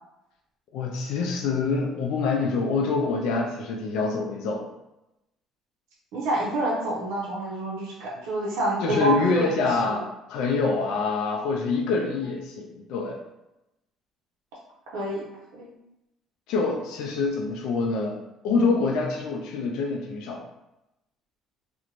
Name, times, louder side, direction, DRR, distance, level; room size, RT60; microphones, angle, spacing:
voice 1, 0.7-4.7 8.8-13.2 16.5-18.2 18.4-20.4, left 4 dB, 80° left, 0 dB, 0.3 m, -26 dB
voice 2, 6.1-9.8 14.9-15.2 15.5-15.7, right 2 dB, 85° right, -7 dB, 0.6 m, -28 dB
2.5 x 2.1 x 2.9 m, 0.93 s
supercardioid pair, 85°, 0 cm